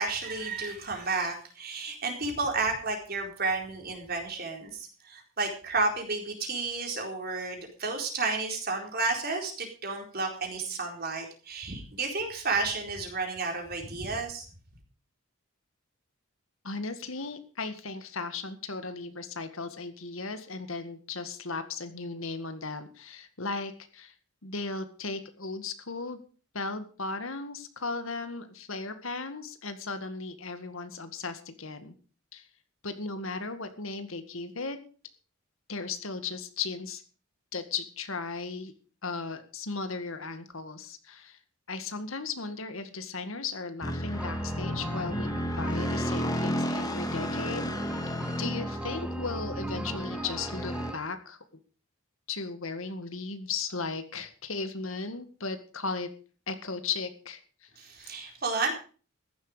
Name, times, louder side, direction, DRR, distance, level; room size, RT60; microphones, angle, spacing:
voice 1, 0.0-14.5 57.8-58.7, right 3 dB, 45° right, 2 dB, 4.3 m, -31 dB
voice 2, 16.6-24.1 24.4-26.2 26.5-31.9 32.3-32.5 32.8-34.8 35.7-37.0 37.5-38.7 39.0-41.4 41.7-47.7 48.4-51.4 52.3-56.1 56.5-57.7 58.0-58.1, left 4 dB, 70° left, 9 dB, 1.9 m, -36 dB
sound 1, 43.8-50.9, equal, 15° left, 1.6 m, -32 dB
sound 2, 44.1-51.0, right 1 dB, 5° right, 1.3 m, -42 dB
14.5 x 11.5 x 5.1 m, 0.39 s
head